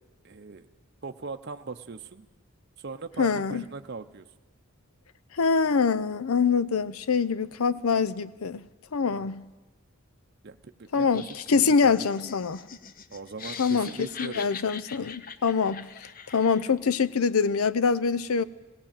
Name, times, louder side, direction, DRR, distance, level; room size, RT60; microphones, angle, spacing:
voice 1, 0.2-0.7 1.0-2.3 2.8-4.3 9.1-9.3 10.4-12.0 13.1-14.5, right 4 dB, 50° right, 0.6 m, -40 dB
voice 2, 3.2-3.6 5.4-8.6 8.9-9.4 10.9-12.7 13.6-13.9 14.2-15.9 16.3-18.4, left 5 dB, 80° left, 0.6 m, -24 dB
Laughter, 10.9-16.8, left 6 dB, 40° left, 0.7 m, -43 dB
17.5 x 17.0 x 8.9 m
head